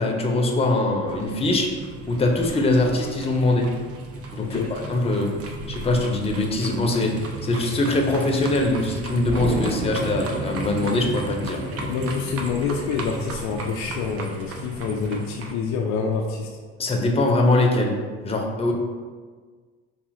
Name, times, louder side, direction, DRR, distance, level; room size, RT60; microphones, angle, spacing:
voice 1, 0.0-1.7 2.1-3.7 4.3-5.3 5.7-7.1 7.4-11.6 16.8-17.9 18.2-18.7, left 2 dB, 20° left, 1 dB, 0.7 m, -22 dB
sound 1, 1.1-15.5, right 2 dB, 45° right, 0.6 m, -34 dB
voice 2, 4.4-4.8 11.7-16.6, left 5 dB, 55° left, 1 dB, 0.5 m, -27 dB
Explosion, 9.3-12.0, right 1 dB, 15° right, 1.0 m, -31 dB
4.8 x 2.7 x 2.5 m, 1.5 s
hypercardioid pair, 60°, 34 cm